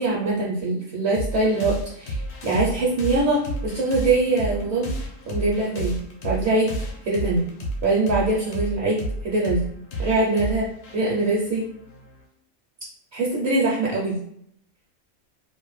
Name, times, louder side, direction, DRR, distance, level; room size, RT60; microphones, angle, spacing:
voice 1, 0.0-4.9 5.3-6.0 6.2-6.7 7.0-7.5 7.8-9.6 10.0-10.6 10.9-11.6 13.1-14.2, right 2 dB, 60° right, -4 dB, 0.8 m, -23 dB
sound 1, 1.1-12.2, equal, 75° left, 1.1 m, -32 dB
2.6 x 2.1 x 3.1 m, 0.70 s
omnidirectional pair, 1.4 m